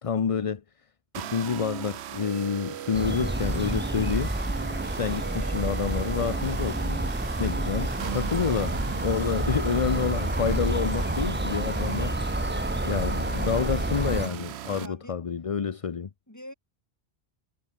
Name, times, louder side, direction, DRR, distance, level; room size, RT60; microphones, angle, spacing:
voice 1, 0.0-0.6 1.1-4.3 4.6-4.7 4.9-12.1 12.8-16.1, left 6 dB, 35° left, 0.7 m, -28 dB
sound 1, 1.1-14.9, right 11 dB, 90° right, 1.0 m, -38 dB
sound 2, 2.9-14.3, right 1 dB, 10° right, 1.3 m, -29 dB
voice 2, 7.7-8.1 9.3-9.5 14.8-15.2 16.3-16.5, left 1 dB, 15° left, 5.0 m, -45 dB
omnidirectional pair, 1.1 m